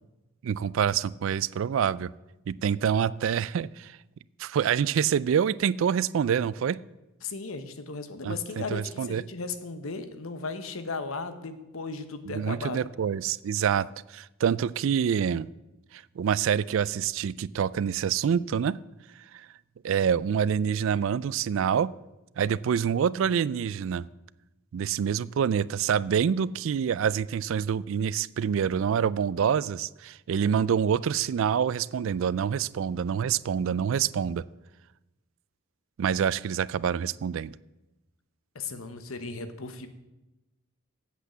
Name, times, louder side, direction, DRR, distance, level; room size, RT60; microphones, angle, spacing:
voice 1, 0.4-2.1 2.5-4.0 4.4-6.8 8.2-9.2 12.3-15.5 15.9-18.8 19.3-19.5 19.8-21.9 22.4-24.0 24.7-34.4 36.0-37.6, right 7 dB, 70° right, 20 dB, 0.3 m, -26 dB
voice 2, 7.2-12.8 38.5-39.9, left 4 dB, 80° left, 10 dB, 1.0 m, -36 dB
8.2 x 8.2 x 7.4 m, 1.0 s
head